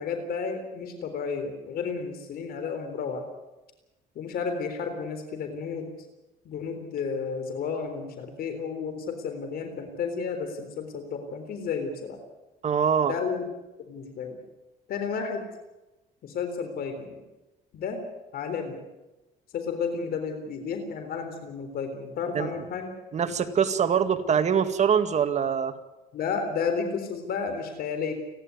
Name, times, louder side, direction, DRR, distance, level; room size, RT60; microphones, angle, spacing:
voice 1, 0.0-3.3 4.2-5.9 6.5-12.2 13.1-13.5 13.8-14.4 14.9-15.5 16.2-17.2 17.7-18.0 18.3-18.8 19.5-22.9 26.1-28.1, left 5 dB, 65° left, 7 dB, 3.8 m, -32 dB
voice 2, 12.6-13.1 22.3-22.5 23.1-25.8, right 7 dB, 40° right, 8 dB, 2.1 m, -24 dB
29.5 x 11.5 x 9.5 m, 1.0 s
cardioid pair, 110°, 17 cm